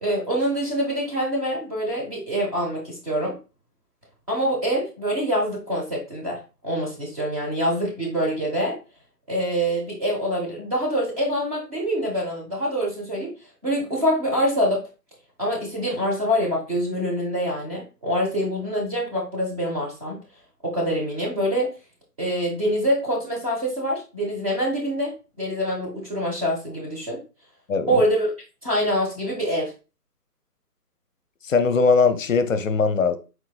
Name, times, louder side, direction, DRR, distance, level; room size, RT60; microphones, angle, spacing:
voice 1, 0.0-3.4 4.3-8.8 9.3-13.3 13.6-14.9 15.4-20.2 20.6-21.7 22.2-27.2 27.9-28.3 28.6-29.7, equal, 20° right, 1.0 m, -25 dB
voice 2, 27.7-28.0 31.4-33.2, left 4 dB, 55° left, 0.6 m, -20 dB
4.6 x 4.0 x 2.3 m
figure-of-eight pair, 150°, 48 cm